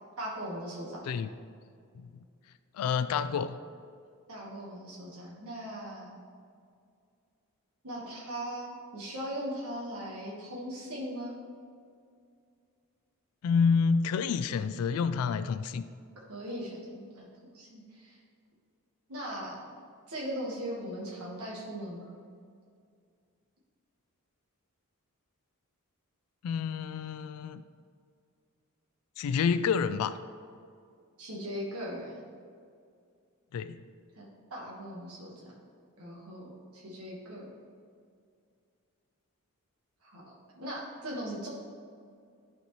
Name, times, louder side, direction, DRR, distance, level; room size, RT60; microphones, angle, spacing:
voice 1, 0.2-1.0 4.3-6.2 7.8-11.3 16.3-17.3 17.5-18.2 19.1-19.6 20.1-22.1 31.2-32.2 34.2-34.3 34.5-35.5 36.0-37.5 40.0-41.5, equal, 75° right, -4 dB, 1.3 m, -39 dB
voice 2, 2.7-3.6 13.4-15.9 26.4-27.6 29.2-30.1 33.5-33.8, left 6 dB, 75° left, 12 dB, 0.3 m, -28 dB
11.5 x 4.3 x 3.1 m, 2.2 s
head